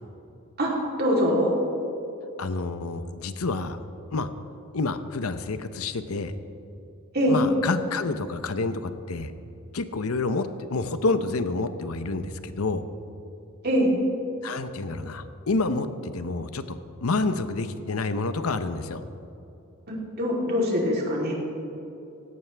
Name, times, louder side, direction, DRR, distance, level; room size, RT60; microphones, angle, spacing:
voice 1, 1.0-1.5 7.1-7.4 13.6-13.9 19.9-21.3, equal, 50° right, -3 dB, 3.4 m, -23 dB
voice 2, 2.4-3.8 4.1-4.3 4.7-6.3 7.3-9.3 9.7-12.8 14.4-19.0, left 3 dB, 80° left, 11 dB, 0.8 m, -28 dB
17.5 x 16.5 x 3.4 m, 2.7 s
head